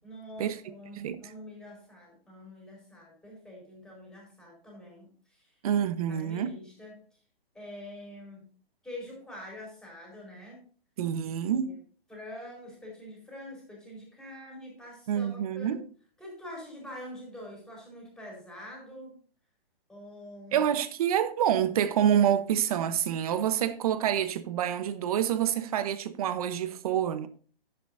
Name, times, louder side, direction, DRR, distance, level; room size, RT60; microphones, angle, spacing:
voice 1, 0.0-5.5 6.1-6.9 7.5-8.5 8.8-10.6 11.2-11.8 12.1-15.8 16.2-19.1 19.9-20.6, left 1 dB, ahead, 4.2 m, -45 dB
voice 2, 5.6-6.5 11.0-11.8 15.1-15.8 20.5-27.3, right 9 dB, 40° right, 1.0 m, -27 dB
10.5 x 10.5 x 2.6 m
hypercardioid pair, 155°, 29 cm